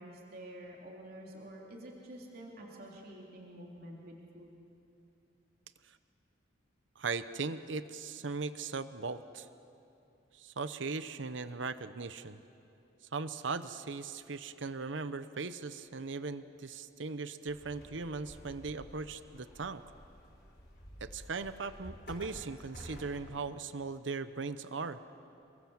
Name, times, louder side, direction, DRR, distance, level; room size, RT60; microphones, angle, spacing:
voice 1, 0.0-4.6, right 1 dB, 50° right, -2 dB, 3.4 m, -49 dB
voice 2, 7.0-9.5 10.3-12.4 13.1-19.8 21.0-25.0, right 4 dB, 75° right, 12 dB, 0.8 m, -39 dB
sound 1, 17.5-23.3, equal, 50° left, 5.4 m, -51 dB
29.0 x 23.0 x 7.3 m, 2.8 s
head